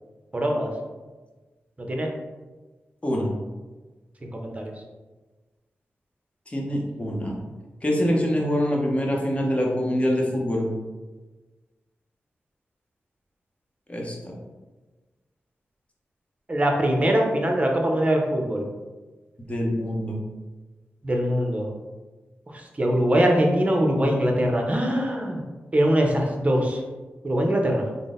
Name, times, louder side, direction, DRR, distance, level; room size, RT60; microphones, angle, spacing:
voice 1, 0.3-0.7 1.8-2.1 4.2-4.7 16.5-18.7 21.0-21.7 22.8-25.4 25.7-26.8 27.2-27.9, equal, 30° right, 1 dB, 0.7 m, -22 dB
voice 2, 6.5-7.4 7.8-10.7 13.9-14.3 19.5-20.2, equal, 30° left, -1 dB, 0.9 m, -25 dB
3.7 x 2.1 x 3.7 m, 1.3 s
cardioid pair, 50°, 4 cm